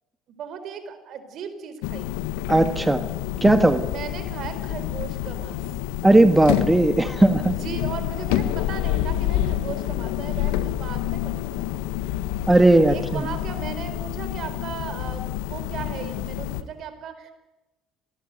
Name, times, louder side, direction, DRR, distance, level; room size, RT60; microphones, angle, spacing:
voice 1, 0.3-2.1 3.9-5.6 7.6-11.7 12.9-17.3, right 7 dB, 60° right, 10 dB, 4.4 m, -36 dB
sound 1, 1.8-16.6, left 13 dB, 80° left, 1.5 m, -28 dB
voice 2, 2.5-3.0 3.4-3.8 6.0-7.6 12.5-13.2, right 2 dB, 10° right, 9 dB, 1.7 m, -17 dB
26.5 x 19.5 x 9.3 m, 1.1 s
hypercardioid pair, 65°, 0 cm